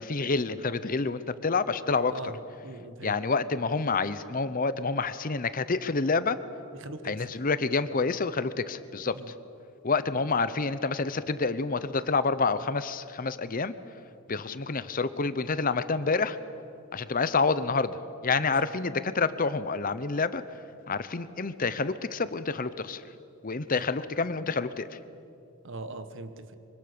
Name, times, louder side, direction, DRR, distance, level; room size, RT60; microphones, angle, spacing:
voice 1, 0.0-2.2 3.0-6.4 7.0-9.3 9.8-13.7 14.3-16.4 16.9-20.6 20.9-23.0 23.4-25.0, left 4 dB, 40° left, 13 dB, 0.7 m, -28 dB
voice 2, 1.9-2.4 2.6-3.2 6.7-7.3 9.1-9.3 18.6-18.7 23.7-23.9 25.6-26.5, right 2 dB, 55° right, 9 dB, 1.5 m, -41 dB
25.0 x 24.5 x 6.8 m, 2.6 s
head